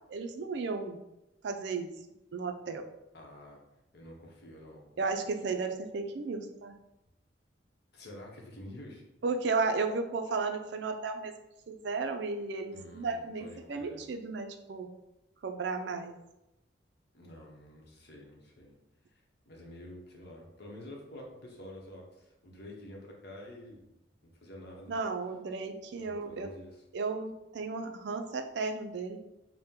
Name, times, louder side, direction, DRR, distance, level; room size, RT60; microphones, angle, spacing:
voice 1, 0.1-1.0 1.4-1.9 2.3-2.9 5.0-6.7 9.2-11.3 11.7-14.9 15.4-16.1 24.9-26.5 26.9-29.2, right 4 dB, 60° right, 5 dB, 0.4 m, -34 dB
voice 2, 3.1-3.6 3.9-5.1 5.4-5.6 7.9-9.0 12.7-14.0 17.1-18.8 19.1-19.2 19.5-23.9 24.2-24.9 26.0-26.8, left 1 dB, 55° left, 0 dB, 0.8 m, -49 dB
4.2 x 2.1 x 3.6 m, 0.92 s
head